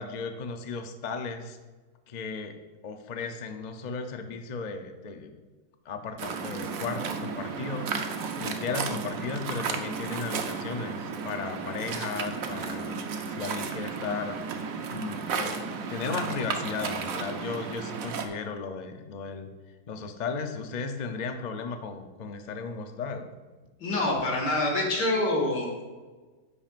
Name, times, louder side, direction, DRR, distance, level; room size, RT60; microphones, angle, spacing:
voice 1, 0.0-1.6 2.1-2.6 2.8-5.3 5.8-8.1 8.4-19.5 19.9-23.3, left 5 dB, 65° left, 6 dB, 0.4 m, -35 dB
Waves surf, 6.2-18.3, right 5 dB, 60° right, 1.1 m, -33 dB
voice 2, 23.8-25.8, left 2 dB, 90° left, -1 dB, 2.6 m, -26 dB
11.0 x 8.9 x 2.5 m, 1.3 s
omnidirectional pair, 1.8 m